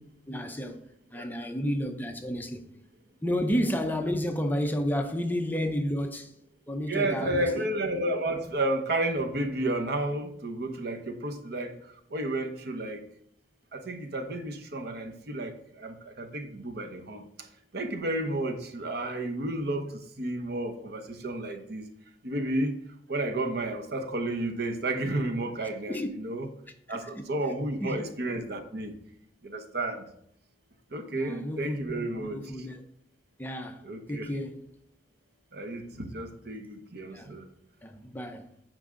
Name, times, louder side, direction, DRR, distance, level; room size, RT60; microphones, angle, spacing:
voice 1, 0.3-0.8 1.1-2.7 3.2-6.3 6.7-7.7 25.9-26.1 26.9-27.2 27.8-28.0 31.1-32.8 33.4-33.8 34.1-34.7 37.1-37.4 37.8-38.5, equal, 10° left, 0.7 m, -31 dB
voice 2, 6.9-13.0 13.7-17.5 17.7-21.8 22.2-22.8 23.1-26.5 26.9-29.0 29.4-30.0 30.9-32.4 33.8-34.3 35.5-37.5, right 1 dB, 60° right, 1.0 m, -32 dB
9.4 x 5.1 x 3.8 m
head